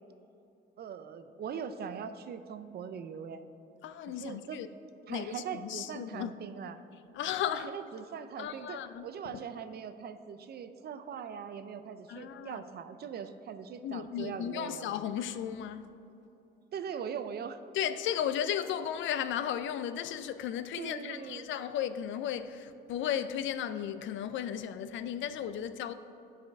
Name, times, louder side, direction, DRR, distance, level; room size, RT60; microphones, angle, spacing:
voice 1, 0.8-3.4 4.1-4.6 5.1-6.8 7.5-14.9 16.7-17.6 20.8-21.5, right 7 dB, 55° right, 0.5 m, -41 dB
voice 2, 3.8-4.7 5.1-6.3 7.1-7.7 8.4-9.4 12.1-12.6 13.8-15.9 17.7-25.9, left 9 dB, 75° left, 0.4 m, -35 dB
10.0 x 4.9 x 3.4 m
cardioid pair, 90°, 20 cm